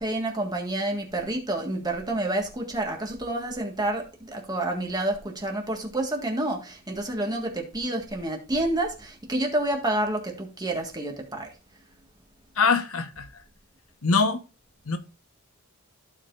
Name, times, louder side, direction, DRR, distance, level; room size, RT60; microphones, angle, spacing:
voice 1, 0.0-11.5, right 1 dB, 20° right, 1.7 m, -29 dB
voice 2, 12.6-13.3 14.0-14.4 14.9-15.0, left 4 dB, 75° left, 1.1 m, -23 dB
15.0 x 5.0 x 2.5 m
head